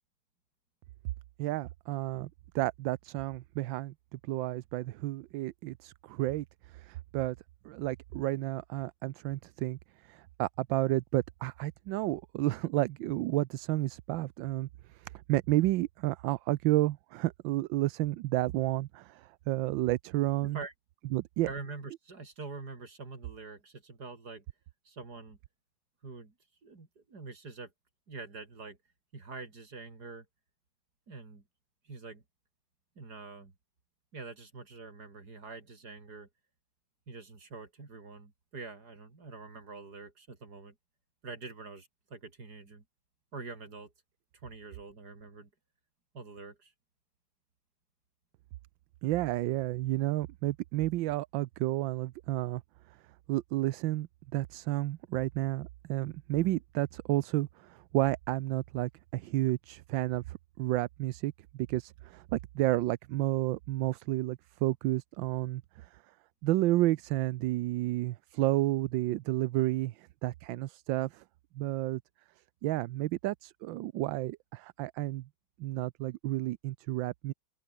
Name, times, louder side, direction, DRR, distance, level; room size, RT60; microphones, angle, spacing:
voice 1, 1.4-2.3 2.5-6.4 6.7-7.4 7.6-9.8 10.0-14.7 14.9-20.6 21.1-21.5 49.0-52.6 53.3-54.1 54.3-61.3 61.7-65.9 66.4-71.2 71.6-72.0 72.6-75.2 75.6-77.3, right 16 dB, 80° right, 1.4 m, -31 dB
voice 2, 20.4-20.7 21.4-24.4 24.8-25.4 26.0-26.3 26.6-27.7 28.1-28.8 29.1-30.3 31.1-31.4 31.8-32.2 33.0-33.5 34.1-36.3 37.1-40.8 41.2-42.8 43.3-43.9 44.4-45.5 46.1-46.7, right 4 dB, 55° right, 4.2 m, -45 dB
open air
omnidirectional pair, 2.1 m